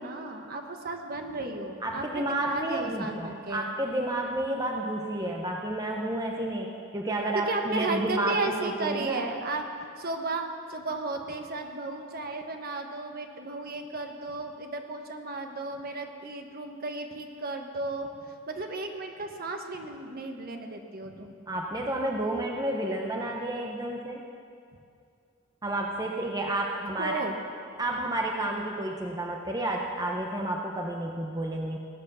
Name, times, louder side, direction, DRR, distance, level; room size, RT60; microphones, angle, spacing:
voice 1, 0.0-3.7 7.3-9.6 10.0-21.3 27.0-27.4, right 2 dB, 45° right, 4 dB, 1.3 m, -34 dB
voice 2, 1.8-9.2 21.5-24.2 25.6-27.2 27.8-31.8, right 1 dB, 15° right, 0 dB, 0.9 m, -31 dB
18.0 x 10.0 x 7.0 m, 2.4 s
head